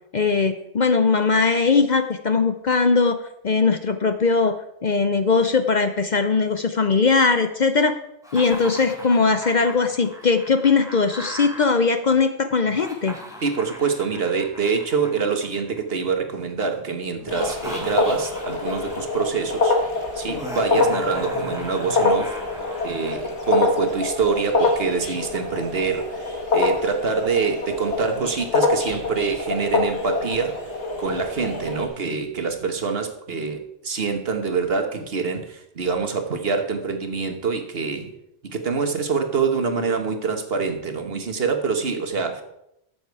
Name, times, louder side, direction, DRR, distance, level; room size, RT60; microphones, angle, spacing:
voice 1, 0.1-4.6 4.8-8.0 8.3-13.1, left 4 dB, 50° left, 8 dB, 0.7 m, -20 dB
Laughter, 8.2-11.6 12.6-15.9 17.2-19.2 20.3-23.2, equal, 5° right, 1.7 m, -38 dB
voice 2, 13.4-19.8 20.1-22.4 22.8-30.6 31.0-38.1 38.4-42.4, right 5 dB, 60° right, 6 dB, 1.5 m, -25 dB
sound 1, 17.3-31.9, left 3 dB, 80° left, 2.0 m, -25 dB
13.5 x 7.3 x 4.7 m, 0.82 s
omnidirectional pair, 1.2 m